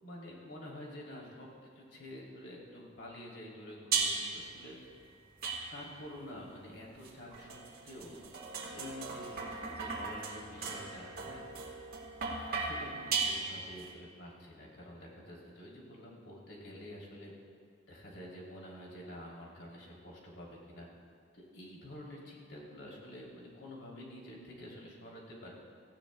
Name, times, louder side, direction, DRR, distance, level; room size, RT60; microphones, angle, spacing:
voice 1, 0.0-4.8 5.7-7.5 7.8-8.2 8.7-11.4 12.5-17.3 17.9-20.9 21.3-25.5, left 1 dB, 75° left, -3 dB, 2.9 m, -48 dB
sound 1, 3.9-4.5 5.4-6.1 7.0-13.9, right 4 dB, 55° right, 1.6 m, -37 dB
18.0 x 15.0 x 2.2 m, 2.3 s
head